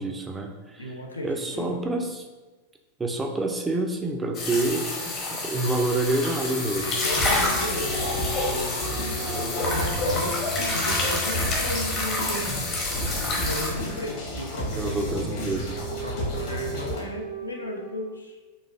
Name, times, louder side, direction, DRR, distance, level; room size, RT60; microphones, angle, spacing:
voice 1, 0.0-0.9 1.2-2.2 3.0-7.0 14.8-15.7, right 2 dB, 15° right, 3 dB, 0.3 m, -28 dB
voice 2, 0.8-1.8 6.8-10.4 10.7-12.7 13.4-15.0 16.0-18.4, left 1 dB, 80° left, 1 dB, 0.5 m, -35 dB
sound 1, 4.3-13.7, left 2 dB, 30° left, 0.7 m, -28 dB
sound 2, 5.6-12.5 15.1-17.9, left 1 dB, 85° right, 0.6 m, -37 dB
sound 3, 6.9-17.0, equal, 50° left, 1.1 m, -32 dB
4.0 x 2.4 x 2.4 m, 1.2 s
figure-of-eight pair, 90°, 0 cm